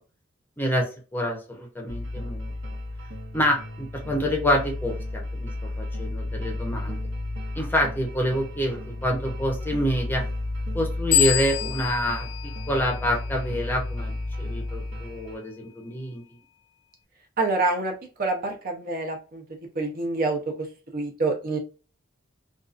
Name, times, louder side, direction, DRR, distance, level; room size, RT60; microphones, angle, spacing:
voice 1, 0.6-2.5 3.3-7.0 7.5-10.2 10.7-12.3 12.7-16.2, equal, 10° left, 0 dB, 0.7 m, -27 dB
sound 1, 1.9-15.4, left 2 dB, 75° right, 0.9 m, -33 dB
sound 2, 11.1-13.6, left 12 dB, 60° left, 0.3 m, -27 dB
voice 2, 17.4-17.9 18.2-19.4 19.7-20.5 20.9-21.6, right 3 dB, 45° right, 2 dB, 0.7 m, -26 dB
2.6 x 2.4 x 2.4 m, 0.35 s
head